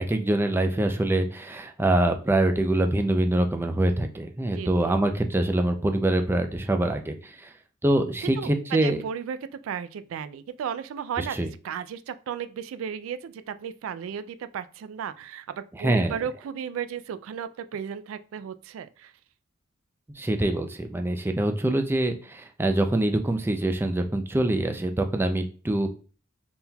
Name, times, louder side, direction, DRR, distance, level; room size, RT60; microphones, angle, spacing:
voice 1, 0.0-7.5 7.8-9.0 11.2-11.5 15.7-16.2 20.2-25.9, right 1 dB, 10° right, 6 dB, 0.4 m, -24 dB
voice 2, 4.6-4.9 8.4-9.4 9.6-11.4 11.6-19.1, right 8 dB, 85° right, 14 dB, 0.3 m, -34 dB
4.2 x 3.7 x 2.3 m, 0.37 s
head